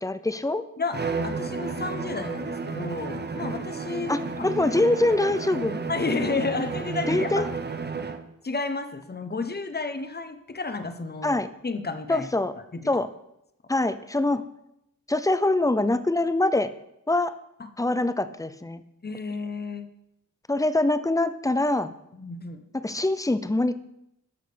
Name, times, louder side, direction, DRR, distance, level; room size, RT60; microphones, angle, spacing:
voice 1, 0.0-0.6 4.1-5.8 7.1-7.5 11.2-11.5 12.1-12.5 12.9-13.1 13.7-14.4 15.1-16.7 17.1-17.3 17.8-18.8 20.5-21.9 22.7-23.8, left 2 dB, 10° left, 13 dB, 0.6 m, -24 dB
voice 2, 0.8-4.5 5.9-7.4 8.4-12.3 12.7-12.8 17.6-17.7 19.0-19.9 22.1-22.6, left 3 dB, 30° left, 9 dB, 1.0 m, -31 dB
Bowed string instrument, 0.9-8.3, right 4 dB, 30° right, 0.7 m, -32 dB
12.0 x 6.5 x 5.1 m, 0.82 s
wide cardioid pair, 95°, 32 cm